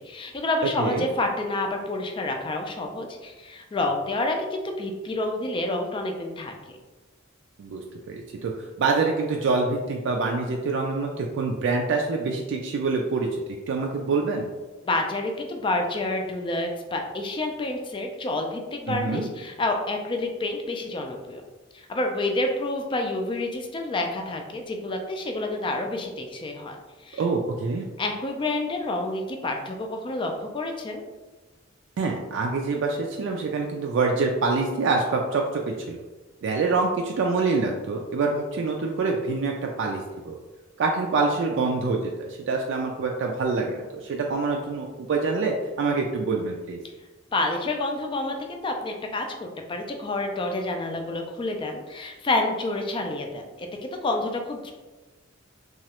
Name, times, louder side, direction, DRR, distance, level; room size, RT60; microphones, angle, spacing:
voice 1, 0.0-6.8 14.8-21.4 21.7-26.8 27.0-27.2 28.0-31.0 47.3-54.7, left 2 dB, 25° left, 3 dB, 0.3 m, -29 dB
voice 2, 7.6-8.5 8.8-13.4 13.7-14.5 18.9-19.3 27.2-27.9 32.0-35.6 35.9-36.0 36.4-40.3 40.8-46.8, right 4 dB, 65° right, 1 dB, 0.3 m, -26 dB
3.0 x 2.3 x 2.9 m, 1.2 s
head